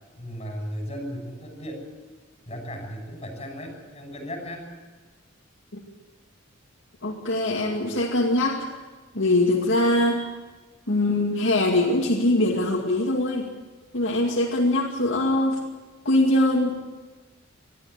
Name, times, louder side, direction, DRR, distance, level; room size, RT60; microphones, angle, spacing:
voice 1, 0.2-1.8 2.5-4.7, equal, 30° left, 2 dB, 6.8 m, -35 dB
voice 2, 7.0-8.7 9.1-10.3 10.9-13.5 13.9-15.6 16.0-16.7, left 1 dB, 65° left, -2 dB, 2.3 m, -22 dB
21.0 x 13.5 x 9.7 m, 1.3 s
head